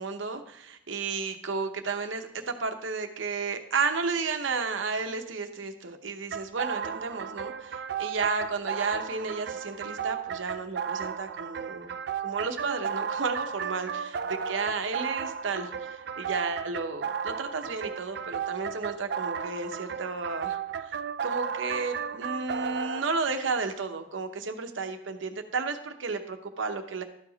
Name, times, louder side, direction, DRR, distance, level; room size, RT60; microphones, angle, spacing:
voice 1, 0.0-11.9 12.2-21.0 21.2-27.0, right 4 dB, 80° right, 6 dB, 0.8 m, -32 dB
sound 1, 6.3-23.0, right 7 dB, 60° right, 0.4 m, -34 dB
12.5 x 4.9 x 3.9 m, 0.73 s
head